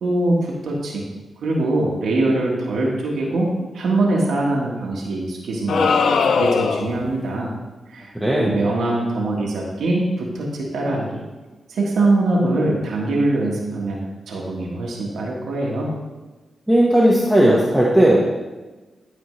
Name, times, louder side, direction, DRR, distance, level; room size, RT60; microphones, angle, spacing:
voice 1, 0.0-1.0 1.4-3.5 3.7-5.9 6.3-7.5 7.9-11.2 11.7-15.9, right 2 dB, 85° right, -3 dB, 1.3 m, -22 dB
sound 1, 5.7-7.1, left 5 dB, 75° left, 0.4 m, -19 dB
voice 2, 8.1-8.6 16.7-18.2, right 1 dB, 5° right, -5 dB, 1.2 m, -16 dB
11.0 x 4.5 x 3.2 m, 1.2 s
cardioid pair, 55°, 0 cm